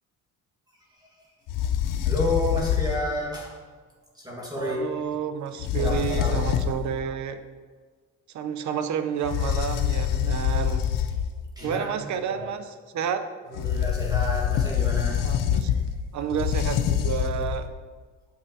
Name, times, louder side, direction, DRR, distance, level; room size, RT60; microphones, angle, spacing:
sound 1, 1.5-3.2 5.6-6.9 9.2-11.4 13.6-17.7, left 9 dB, 80° left, 0.6 m, -25 dB
voice 1, 2.0-3.5 4.1-4.9 5.8-6.4 11.6-12.1 12.4-12.5 13.5-15.2, left 1 dB, 10° right, -3 dB, 1.5 m, -30 dB
voice 2, 4.6-7.4 8.3-10.9 11.6-13.3 15.2-15.7 16.1-17.7, right 8 dB, 60° right, 9 dB, 0.7 m, -30 dB
8.9 x 7.3 x 2.8 m, 1.5 s
cardioid pair, 105°, 32 cm